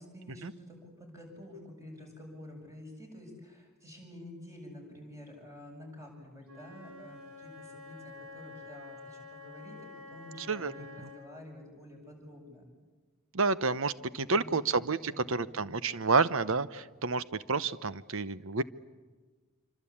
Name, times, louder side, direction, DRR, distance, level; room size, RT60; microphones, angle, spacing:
voice 1, 0.0-12.7 14.2-15.7, left 1 dB, 15° right, 1 dB, 7.9 m, -49 dB
Wind instrument woodwind instrument, 6.4-11.4, left 3 dB, 80° right, 7.4 m, -49 dB
voice 2, 10.4-10.7 13.3-18.6, right 4 dB, 60° right, 15 dB, 0.9 m, -29 dB
26.5 x 25.0 x 8.7 m, 1.4 s
head